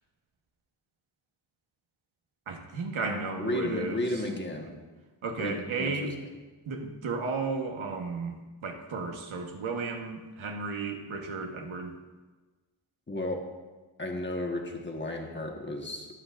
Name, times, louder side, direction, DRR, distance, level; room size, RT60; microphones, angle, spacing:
voice 1, 2.5-4.1 5.2-6.1 6.7-8.3 8.6-11.9, right 4 dB, 80° right, 2 dB, 1.3 m, -34 dB
voice 2, 3.0-4.7 5.4-6.1 13.1-13.4 14.0-16.1, left 1 dB, 25° left, 1 dB, 1.4 m, -33 dB
21.5 x 7.6 x 2.5 m, 1.3 s
wide cardioid pair, 120°, 47 cm